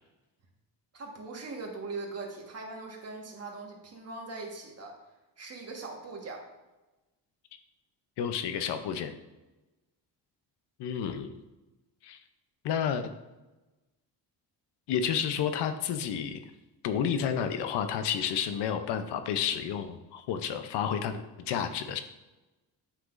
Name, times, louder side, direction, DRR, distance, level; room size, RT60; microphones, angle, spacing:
voice 1, 0.9-5.0 5.4-6.5, right 3 dB, 40° right, 1 dB, 1.5 m, -40 dB
voice 2, 8.2-9.1 10.8-11.3 12.0-12.2 12.6-13.1 14.9-16.4 16.8-22.0, left 8 dB, 85° left, 9 dB, 0.7 m, -30 dB
8.2 x 5.9 x 2.6 m, 1.1 s
cardioid pair, 125°, 40 cm